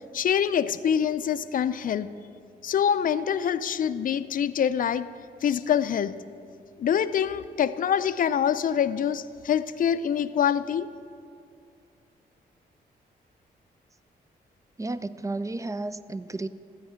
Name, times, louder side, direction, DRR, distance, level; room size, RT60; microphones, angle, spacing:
voice 1, 0.1-2.1 2.6-5.1 5.4-6.2 6.8-10.9, left 8 dB, 55° left, 13 dB, 0.4 m, -25 dB
voice 2, 14.8-16.5, right 2 dB, 20° right, 14 dB, 0.4 m, -32 dB
13.5 x 4.6 x 8.9 m, 2.3 s
cardioid pair, 75°, 18 cm